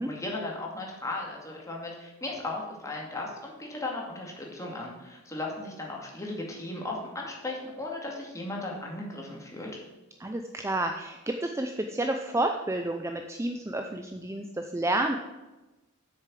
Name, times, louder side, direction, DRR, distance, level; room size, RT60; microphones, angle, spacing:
voice 1, 0.0-9.8, left 2 dB, 15° left, -2 dB, 2.2 m, -36 dB
voice 2, 10.2-15.2, right 1 dB, 15° right, 5 dB, 0.5 m, -30 dB
8.1 x 6.6 x 7.6 m, 1.1 s
head